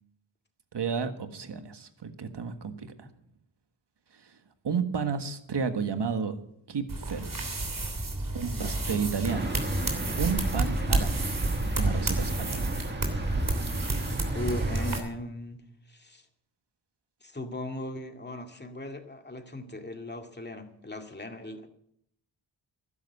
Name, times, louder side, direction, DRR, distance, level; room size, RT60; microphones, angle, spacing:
voice 1, 0.7-3.1 4.1-4.4 4.6-6.4 6.7-7.5 8.3-9.5 10.2-11.3 11.8-12.7, right 6 dB, 65° right, 9 dB, 1.6 m, -32 dB
sound 1, 6.9-15.0, right 2 dB, 45° right, 3.1 m, -30 dB
voice 2, 8.5-9.1 14.3-15.6 15.9-16.3 17.2-21.7, left 1 dB, 25° left, 5 dB, 2.2 m, -38 dB
sound 2, 9.3-15.0, right 1 dB, 25° right, 1.9 m, -36 dB
12.5 x 10.5 x 8.2 m, 0.71 s
wide cardioid pair, 70°, 44 cm